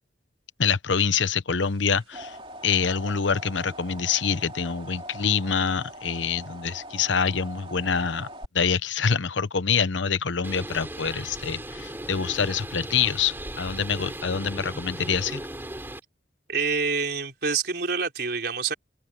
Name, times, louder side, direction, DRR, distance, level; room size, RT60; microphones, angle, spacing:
voice 1, 0.6-2.4 2.6-8.3 8.5-15.4, left 6 dB, 80° left, 0.9 m, -26 dB
sound 1, 1.8-8.5, right 1 dB, 30° right, 2.7 m, -42 dB
Bird, 10.4-16.0, right 1 dB, 10° right, 3.4 m, -37 dB
voice 2, 16.5-18.7, right 5 dB, 55° right, 5.0 m, -27 dB
head